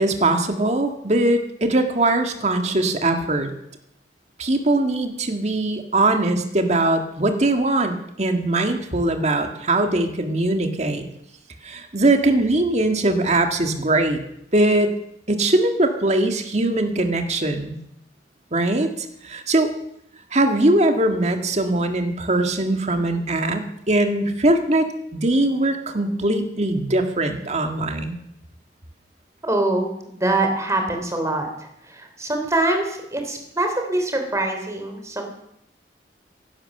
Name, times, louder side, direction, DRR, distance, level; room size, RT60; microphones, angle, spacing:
voice 1, 0.0-3.5 4.4-11.1 11.6-14.2 14.5-15.0 15.3-17.8 18.5-18.9 19.2-19.7 20.3-28.2, right 2 dB, 40° right, 5 dB, 1.8 m, -21 dB
voice 2, 29.4-35.3, right 2 dB, 20° right, 4 dB, 3.1 m, -24 dB
16.0 x 11.5 x 6.6 m, 0.79 s
head